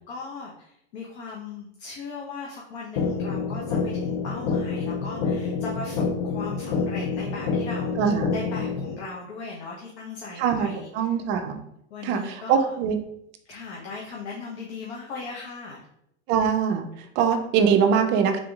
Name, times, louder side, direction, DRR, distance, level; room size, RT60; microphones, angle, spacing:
voice 1, 0.1-10.9 11.9-12.7 13.5-15.8, left 4 dB, 70° left, -3 dB, 0.9 m, -38 dB
sound 1, 3.0-9.0, left 5 dB, 50° left, 0.5 m, -27 dB
voice 2, 8.0-8.3 10.4-11.6 12.0-13.0 16.3-18.4, right 7 dB, 35° right, 6 dB, 0.4 m, -23 dB
3.8 x 3.6 x 2.3 m, 0.76 s
supercardioid pair, 125°, 35 cm